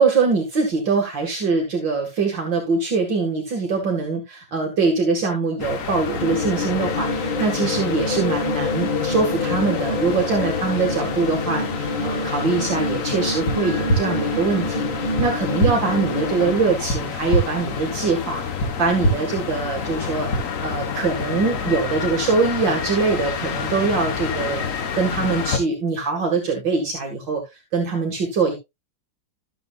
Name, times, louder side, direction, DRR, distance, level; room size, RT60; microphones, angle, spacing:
voice 1, 0.0-20.3 20.6-24.7 25.0-27.4 27.7-28.6, right 4 dB, 70° right, 2 dB, 2.5 m, -23 dB
sound 1, 5.6-25.6, left 6 dB, 45° left, 1.4 m, -29 dB
sound 2, 6.1-16.6, left 2 dB, 25° left, 1.7 m, -27 dB
sound 3, 13.4-13.5 13.9-14.0 15.2-15.3 15.6-15.7 16.9-17.0 17.3-17.4 18.6-18.7 19.0-19.1 20.3-20.4, right 1 dB, 70° left, 3.5 m, -19 dB
13.5 x 7.9 x 2.4 m, 0.22 s
omnidirectional pair, 2.1 m